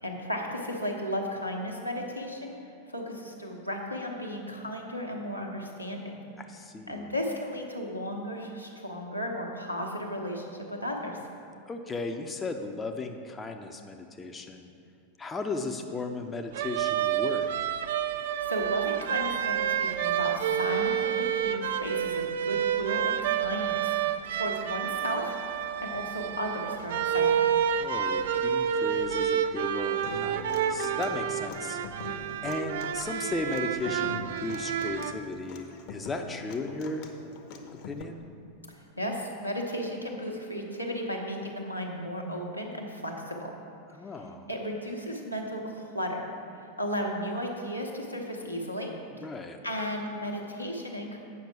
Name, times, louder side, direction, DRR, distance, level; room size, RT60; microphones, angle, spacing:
voice 1, 0.0-2.6 2.9-6.1 6.9-11.2 18.2-25.3 25.8-27.4 38.7-43.5 44.5-46.2 46.5-48.9 49.6-51.2, equal, 90° left, 1 dB, 1.1 m, -34 dB
voice 2, 6.4-7.1 11.7-14.7 15.2-17.7 27.8-37.1 37.7-38.2 43.9-44.5 49.1-49.6, left 3 dB, 15° left, 4 dB, 0.6 m, -36 dB
sound 1, 16.5-35.1, right 9 dB, 55° right, 0.4 m, -29 dB
Human voice / Acoustic guitar, 30.0-38.0, left 3 dB, 45° left, 0.9 m, -43 dB
8.4 x 5.9 x 5.9 m, 2.6 s
figure-of-eight pair, 90°, 0 cm